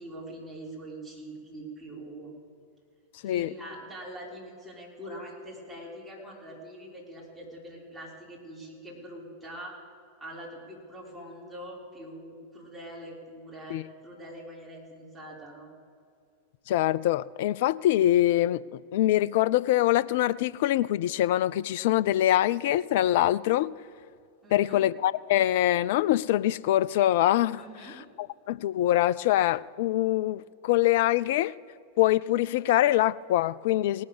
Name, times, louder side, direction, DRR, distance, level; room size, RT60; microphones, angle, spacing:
voice 1, 0.0-2.3 3.2-9.8 10.2-15.7 24.4-24.9 27.6-28.0, right 1 dB, 15° right, 3.9 m, -43 dB
voice 2, 16.7-23.7 24.5-27.6 28.2-31.5 32.0-34.0, left 14 dB, 50° left, 0.3 m, -24 dB
18.0 x 6.5 x 7.2 m
figure-of-eight pair, 90°, 0 cm